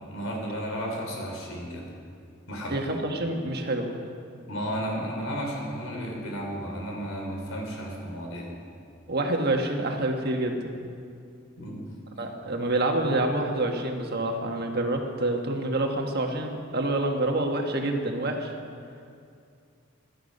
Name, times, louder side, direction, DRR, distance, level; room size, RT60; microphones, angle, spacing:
voice 1, 0.0-1.9 2.5-2.8 4.5-8.6 11.6-11.9, equal, 85° left, 0 dB, 3.6 m, -33 dB
voice 2, 2.7-3.9 9.1-10.7 12.2-18.5, right 2 dB, 50° right, 3 dB, 1.5 m, -27 dB
15.5 x 12.0 x 5.4 m, 2.4 s
head